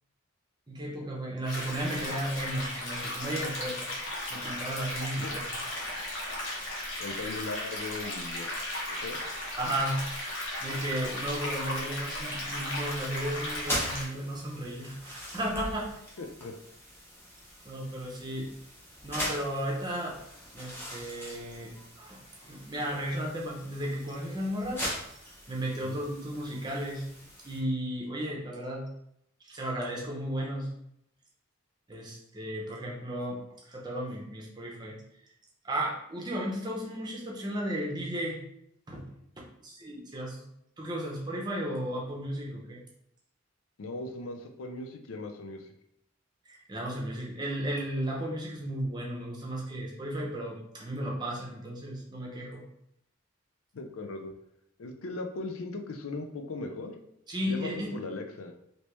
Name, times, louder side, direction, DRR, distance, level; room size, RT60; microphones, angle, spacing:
voice 1, 0.7-3.9 4.3-5.5 9.6-10.2 10.6-16.0 17.6-18.5 19.0-20.2 20.5-24.8 25.5-27.0 27.4-28.9 29.4-30.7 31.9-33.4 33.7-35.0 35.6-38.4 38.9-39.1 39.6-40.4 40.8-42.8 46.5-52.6 57.3-57.9, right 1 dB, 20° right, -2 dB, 0.7 m, -34 dB
sound 1, 1.5-14.1, left 1 dB, 65° left, 1.0 m, -36 dB
voice 2, 7.0-8.5 9.0-9.2 16.2-16.5 25.8-26.0 43.8-45.7 53.7-54.3 54.8-57.0 57.4-58.5, left 3 dB, 85° left, 5 dB, 0.5 m, -38 dB
sound 2, 10.7-27.6, equal, 10° left, 0.8 m, -42 dB
3.3 x 2.8 x 3.0 m, 0.74 s
head